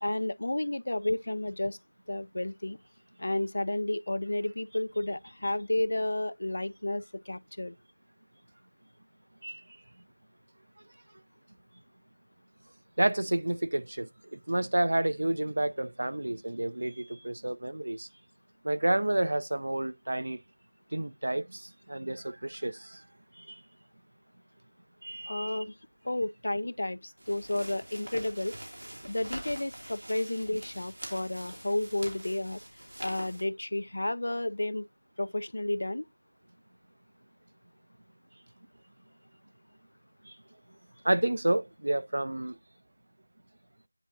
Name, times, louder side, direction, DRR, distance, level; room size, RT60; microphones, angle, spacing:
voice 1, 0.0-1.8 2.1-2.8 3.2-7.8 25.3-25.7 26.0-28.6 29.0-32.6 33.0-34.9 35.2-36.1, left 1 dB, 55° left, 0.3 m, -31 dB
voice 2, 13.0-18.1 18.6-20.4 20.9-23.0 23.4-23.6 25.0-25.6 40.2-40.4 41.0-42.6, right 1 dB, 60° right, 0.5 m, -30 dB
sound 1, 27.2-33.4, right 1 dB, 85° right, 2.6 m, -44 dB
10.0 x 3.6 x 2.8 m
figure-of-eight pair, 175°, 0 cm